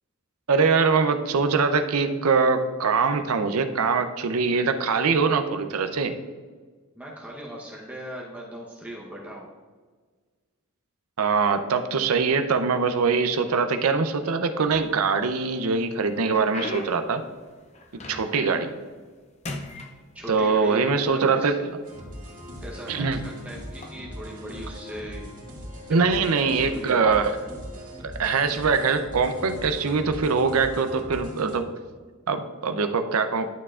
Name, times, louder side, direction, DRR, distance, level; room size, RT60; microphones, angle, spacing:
voice 1, 0.5-6.2 11.2-17.2 18.1-18.7 20.3-21.7 22.9-23.2 25.9-27.3 28.2-31.7 32.3-33.5, right 5 dB, 80° right, 8 dB, 0.6 m, -23 dB
voice 2, 6.9-9.5 18.3-18.7 20.1-21.5 22.6-25.3 26.0-26.9, right 1 dB, 5° right, -4 dB, 0.8 m, -39 dB
sound 1, 14.6-15.3 15.8-18.5 18.9-19.2 19.4-20.7 21.5-21.6 22.3-22.5 23.7-23.9, left 2 dB, 30° left, 0.6 m, -38 dB
sound 2, 21.8-31.6, equal, 40° right, 1.9 m, -40 dB
11.0 x 6.7 x 2.4 m, 1.5 s
head